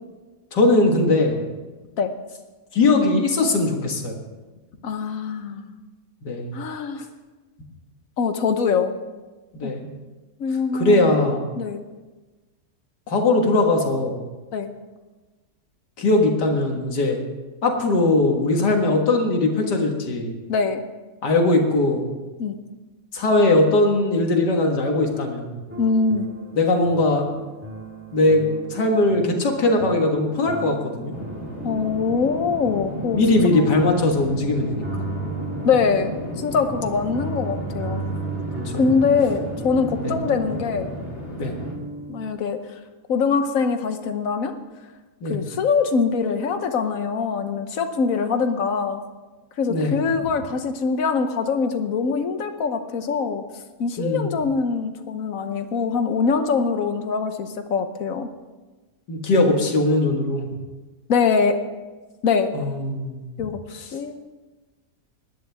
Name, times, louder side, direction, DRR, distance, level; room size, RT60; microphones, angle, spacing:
voice 1, 0.5-1.4 2.7-4.2 6.3-6.6 9.5-9.9 10.7-11.5 13.1-14.2 16.0-17.2 17.6-20.4 21.2-22.1 23.1-25.6 26.6-27.2 28.1-28.5 28.7-31.2 33.1-34.8 40.0-40.1 41.4-41.5 45.2-45.4 49.7-50.0 54.0-54.3 59.1-60.5 62.5-63.2, left 2 dB, 85° left, 2 dB, 2.3 m, -20 dB
voice 2, 4.8-5.8 6.5-7.0 8.2-8.9 9.6-9.7 10.4-11.2 11.6-11.8 14.5-14.7 20.5-20.8 22.4-22.6 25.8-26.3 31.6-33.2 33.5-33.7 35.6-38.0 38.8-40.9 42.1-42.6 43.1-44.5 45.3-49.0 49.6-53.4 53.8-58.3 61.1-61.6 62.2-62.5 63.4-64.1, left 5 dB, 60° left, 8 dB, 1.3 m, -23 dB
sound 1, 25.7-42.3, right 3 dB, 10° right, 1.7 m, -36 dB
sound 2, 31.1-41.7, equal, 35° left, 2.6 m, -34 dB
19.5 x 10.5 x 3.5 m, 1.2 s
omnidirectional pair, 1.8 m